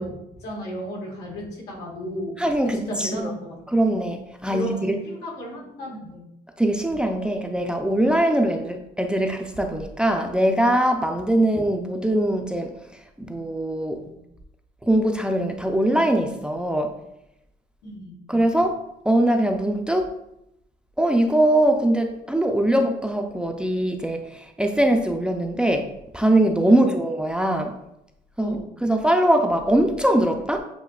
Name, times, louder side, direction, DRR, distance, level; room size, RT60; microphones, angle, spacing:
voice 1, 0.0-2.3 2.7-3.6 4.4-6.2 13.9-14.2 17.8-18.3 26.6-26.9 28.4-28.7, right 1 dB, 90° left, -3 dB, 1.7 m, -34 dB
voice 2, 2.4-3.2 3.7-5.0 6.6-12.7 13.2-14.0 14.8-17.0 18.3-20.1 21.0-27.8 28.4-30.6, right 1 dB, 5° right, 4 dB, 0.4 m, -22 dB
8.0 x 2.7 x 2.3 m, 0.83 s
cardioid pair, 110°, 17 cm